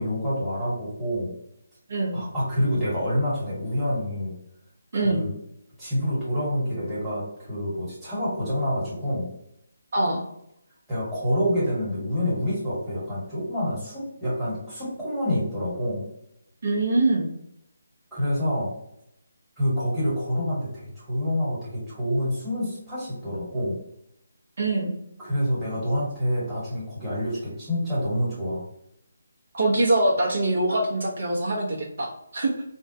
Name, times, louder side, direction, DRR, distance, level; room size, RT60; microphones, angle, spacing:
voice 1, 0.0-1.3 2.1-4.3 4.9-5.3 5.8-9.3 10.9-16.1 18.1-18.7 19.6-23.8 25.2-28.6, equal, ahead, -12 dB, 1.3 m, -27 dB
voice 2, 1.9-2.2 4.9-5.2 9.9-10.2 16.6-17.3 24.6-25.0 29.5-32.5, right 2 dB, 55° right, -3 dB, 0.7 m, -23 dB
3.5 x 2.2 x 2.7 m, 0.79 s
hypercardioid pair, 170°, 0 cm